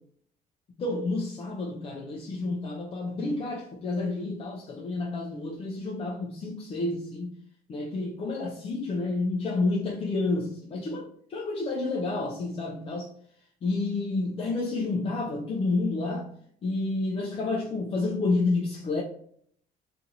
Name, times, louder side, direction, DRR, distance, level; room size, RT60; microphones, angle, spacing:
voice 1, 0.8-7.3 7.7-13.1 13.6-16.3 16.6-19.0, left 3 dB, 35° left, 0.4 m, -30 dB
2.7 x 2.5 x 2.6 m
cardioid pair, 110°, 17 cm